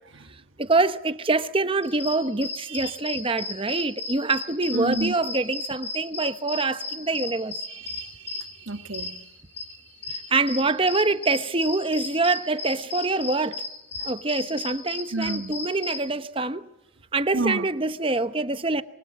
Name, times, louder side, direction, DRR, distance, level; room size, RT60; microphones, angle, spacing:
voice 1, 0.6-7.5 10.1-13.6 14.0-16.7 17.1-18.8, right 3 dB, 25° right, 1.0 m, -25 dB
sound 1, 1.8-16.0, left 3 dB, 30° left, 5.5 m, -35 dB
voice 2, 4.7-5.1 7.7-8.3 8.7-9.1 15.1-15.5 17.3-17.7, right 2 dB, 85° right, 1.8 m, -29 dB
25.0 x 24.0 x 8.4 m
head